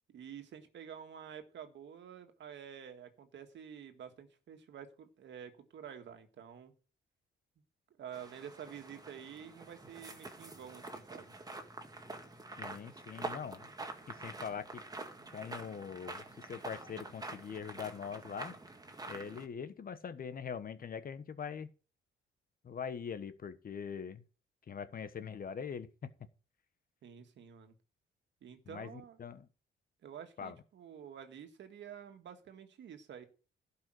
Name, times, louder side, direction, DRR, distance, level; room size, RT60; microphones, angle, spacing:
voice 1, 0.1-6.7 8.0-11.4 27.0-27.8 28.4-29.2 30.0-33.2, right 8 dB, 65° right, 1.9 m, -49 dB
sound 1, 8.1-19.5, right 2 dB, 20° right, 1.9 m, -47 dB
voice 2, 12.6-13.7 14.1-14.8 15.3-18.5 19.1-21.7 22.6-24.2 24.7-26.1 28.7-29.5 30.4-30.6, left 7 dB, 45° left, 1.2 m, -42 dB
12.0 x 5.7 x 7.7 m
cardioid pair, 90°, 20 cm